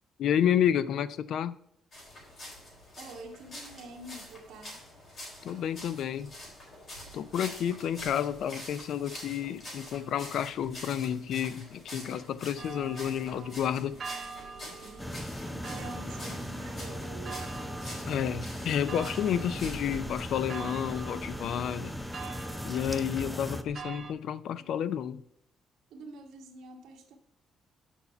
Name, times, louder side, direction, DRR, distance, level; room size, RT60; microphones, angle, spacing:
voice 1, 0.2-1.6 5.4-6.3 7.1-14.0 18.1-22.0 22.6-25.2, left 9 dB, 60° left, 0.4 m, -30 dB
sound 1, 1.9-20.2, left 1 dB, 40° left, 3.8 m, -46 dB
voice 2, 3.0-4.8 14.8-17.5 23.1-23.3 24.6-24.9 25.9-27.2, right 3 dB, 85° right, 1.5 m, -47 dB
sound 2, 12.6-24.1, right 5 dB, 35° right, 1.1 m, -44 dB
sound 3, 15.0-23.6, left 1 dB, 5° left, 0.5 m, -38 dB
7.2 x 5.4 x 5.6 m
cardioid pair, 165°, 0 cm